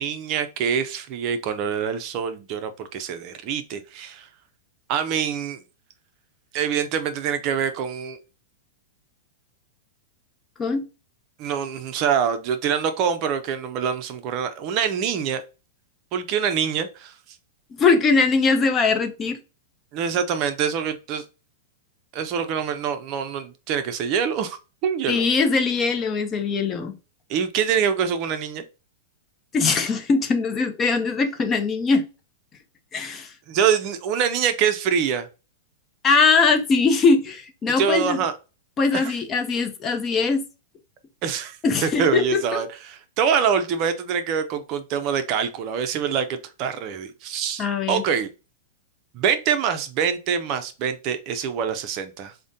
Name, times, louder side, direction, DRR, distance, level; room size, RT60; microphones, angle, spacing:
voice 1, 0.0-4.3 4.9-5.6 6.5-8.2 11.4-15.4 16.1-17.1 19.9-21.2 22.1-25.2 27.3-28.6 33.5-35.3 37.8-38.3 38.9-39.1 41.2-41.6 41.8-48.3 49.1-52.3, right 7 dB, 40° right, 0.5 m, -25 dB
voice 2, 17.8-19.4 25.1-26.9 29.5-32.0 32.9-33.3 36.0-38.2 38.8-40.4 41.6-42.4 47.6-48.0, left 4 dB, 25° left, 0.7 m, -21 dB
4.8 x 2.1 x 2.7 m
hypercardioid pair, 135°, 0 cm